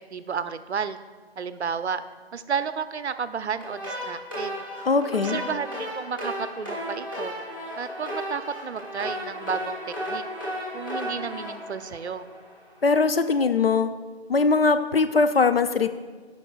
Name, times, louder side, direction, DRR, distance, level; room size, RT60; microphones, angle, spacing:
voice 1, 0.1-1.0 1.4-2.0 2.3-4.6 5.1-7.3 7.7-10.2 10.7-12.2, right 6 dB, 85° right, 12 dB, 0.6 m, -32 dB
sound 1, 3.6-12.7, equal, 20° left, 1.5 m, -34 dB
voice 2, 4.8-5.4 12.8-13.9 14.3-15.9, left 4 dB, 65° left, 10 dB, 0.5 m, -21 dB
14.5 x 5.3 x 2.3 m, 1.4 s
figure-of-eight pair, 180°, 32 cm